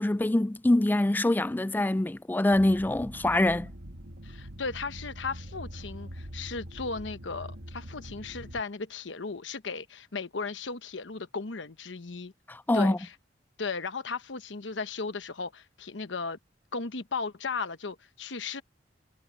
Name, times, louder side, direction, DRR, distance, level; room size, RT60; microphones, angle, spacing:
voice 1, 0.0-3.7 12.5-13.0, left 1 dB, 10° left, 0.3 m, -24 dB
sound 1, 2.5-8.6, equal, 85° right, 2.3 m, -43 dB
voice 2, 4.2-12.3 12.7-13.1 13.6-16.4 16.7-18.6, left 4 dB, 80° left, 1.0 m, -36 dB
head